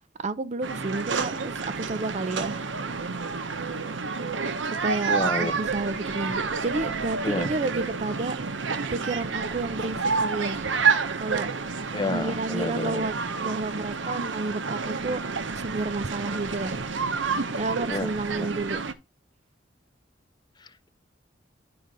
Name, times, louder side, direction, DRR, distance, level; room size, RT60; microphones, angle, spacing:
voice 1, 0.2-2.6 4.8-8.4 8.9-10.7 11.2-11.5 12.0-16.8 17.5-18.8, right 3 dB, 35° right, 0.5 m, -31 dB
sound 1, 0.6-18.9, right 5 dB, 70° right, 0.9 m, -29 dB
voice 2, 5.0-5.6 7.2-7.5 11.9-13.1 17.9-18.5 20.6-20.9, left 2 dB, 25° left, 0.6 m, -31 dB
10.5 x 3.9 x 5.2 m
head